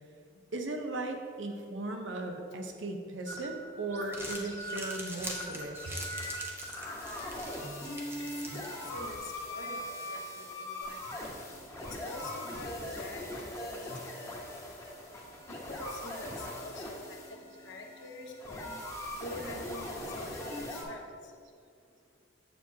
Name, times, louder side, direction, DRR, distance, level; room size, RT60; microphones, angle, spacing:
voice 1, 0.5-6.0, right 2 dB, 80° right, 4 dB, 0.7 m, -37 dB
voice 2, 1.9-2.2 8.2-11.3 12.0-14.1 15.5-18.7 19.2-21.1, left 1 dB, 75° left, 1 dB, 0.9 m, -46 dB
sound 1, 3.3-20.8, left 1 dB, 15° left, 1.0 m, -41 dB
Crumpling crinkling, 3.9-9.2, right 1 dB, 15° right, 0.7 m, -44 dB
7.5 x 6.9 x 2.8 m, 2.3 s
head